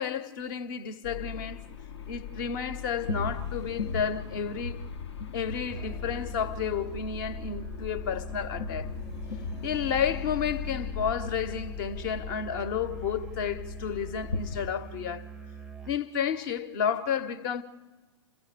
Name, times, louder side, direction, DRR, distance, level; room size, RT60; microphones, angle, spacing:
voice 1, 0.0-1.6 2.1-4.8 5.3-8.9 9.6-15.3 15.9-17.6, left 7 dB, 45° left, 1.1 m, -31 dB
sound 1, 1.0-14.7, left 6 dB, 70° left, 1.0 m, -37 dB
Musical instrument, 5.7-16.1, right 6 dB, 5° right, 0.6 m, -44 dB
28.0 x 15.5 x 6.7 m
figure-of-eight pair, 110°, 15 cm